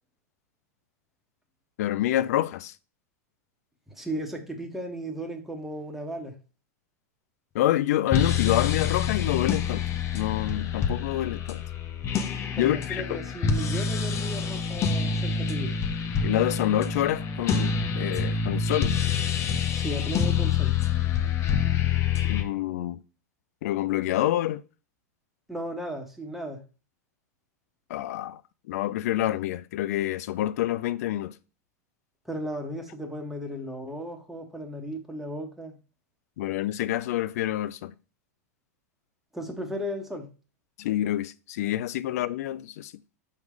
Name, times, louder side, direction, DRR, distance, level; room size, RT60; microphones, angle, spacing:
voice 1, 1.8-2.7 7.5-9.8 10.1-11.6 12.6-13.0 16.2-18.9 22.3-23.0 23.6-24.6 27.9-28.4 28.7-31.3 36.4-37.9 40.8-42.9, left 13 dB, 65° left, 0.5 m, -27 dB
voice 2, 3.9-6.3 12.5-15.7 19.7-20.7 25.5-26.6 32.2-35.8 39.3-40.3, equal, 5° right, 1.5 m, -35 dB
sound 1, 8.1-22.4, left 7 dB, 35° left, 0.9 m, -27 dB
6.2 x 3.7 x 4.8 m
hypercardioid pair, 100°, 9 cm